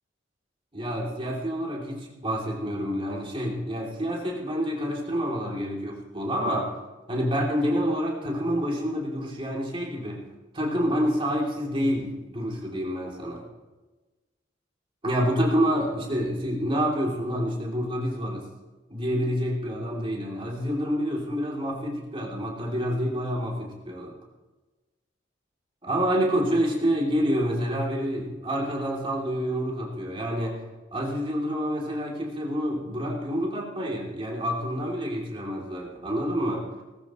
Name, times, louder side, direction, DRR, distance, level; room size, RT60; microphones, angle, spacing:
voice 1, 0.7-6.7 7.1-10.2 10.5-13.4 15.0-18.4 18.9-24.1 25.8-30.6 30.9-36.6, equal, 30° right, -2 dB, 3.3 m, -28 dB
18.5 x 15.0 x 3.2 m, 1.2 s
head